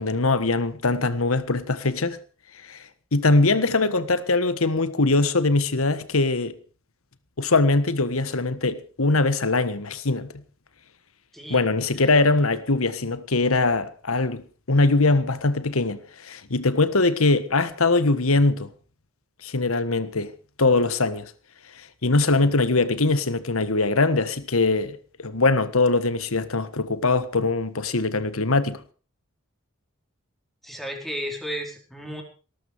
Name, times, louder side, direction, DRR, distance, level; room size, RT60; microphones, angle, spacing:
voice 1, 0.0-2.2 2.6-2.8 3.1-6.5 7.4-10.3 11.5-14.4 14.7-18.7 19.4-20.3 20.6-21.3 22.0-28.8, left 3 dB, 80° left, 1.5 m, -22 dB
voice 2, 11.3-11.7 11.9-12.1 30.6-32.2, equal, ahead, 4.7 m, -33 dB
18.5 x 13.5 x 4.8 m
head